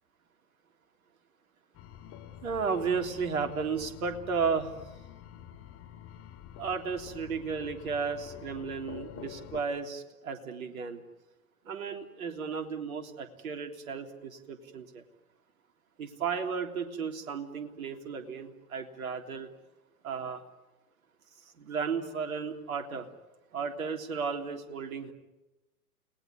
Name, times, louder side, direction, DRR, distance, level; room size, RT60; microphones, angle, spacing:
sound 1, 1.7-9.6, left 10 dB, 30° left, 2.8 m, -47 dB
voice 1, 2.4-4.7 6.6-11.0 11.6-15.0 16.0-19.5 20.0-20.4 21.6-23.1 23.5-25.1, right 5 dB, 60° right, 5 dB, 3.4 m, -34 dB
30.0 x 19.5 x 9.8 m, 1.0 s
figure-of-eight pair, 105°, 46 cm